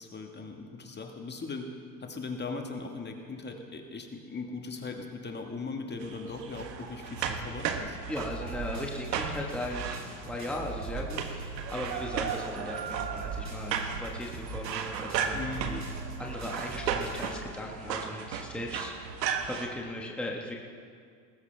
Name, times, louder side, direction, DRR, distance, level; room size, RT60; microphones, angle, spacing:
voice 1, 0.0-1.7 2.0-8.0 15.3-15.8, left 3 dB, 20° left, 3 dB, 1.6 m, -39 dB
sound 1, 6.0-19.7, right 7 dB, 80° right, 1.4 m, -35 dB
voice 2, 8.1-15.8 16.2-20.6, left 1 dB, ahead, -1 dB, 1.4 m, -38 dB
sound 2, 8.2-12.6 12.9-17.5, right 3 dB, 35° right, 3.1 m, -41 dB
19.5 x 15.0 x 3.4 m, 2.1 s
hypercardioid pair, 90°, 49 cm